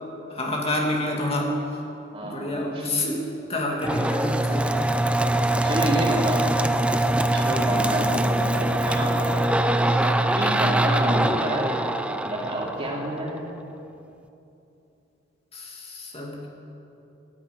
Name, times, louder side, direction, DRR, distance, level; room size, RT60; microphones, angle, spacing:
voice 1, 0.3-1.5 2.2-3.2 3.5-4.9 7.7-7.9 15.5-16.5, left 1 dB, 30° left, -1 dB, 2.1 m, -28 dB
voice 2, 2.1-2.9 5.6-6.5 7.3-9.6 9.8-13.4, right 1 dB, 30° right, -2 dB, 2.7 m, -30 dB
sound 1, 3.8-13.4, right 1 dB, 5° right, 0.5 m, -23 dB
13.5 x 10.5 x 9.5 m, 2.8 s
head